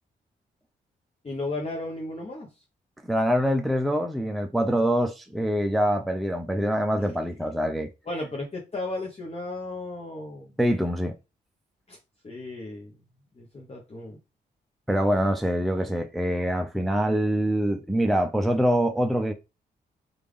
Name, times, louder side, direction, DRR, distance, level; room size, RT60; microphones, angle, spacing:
voice 1, 1.2-2.5 8.0-10.5 11.9-12.0 12.2-13.0 13.4-14.2, left 2 dB, 30° left, 1.1 m, -34 dB
voice 2, 3.0-7.9 10.6-11.1 14.9-19.3, equal, ahead, 0.5 m, -24 dB
3.3 x 2.6 x 3.3 m
supercardioid pair, 50°, 20 cm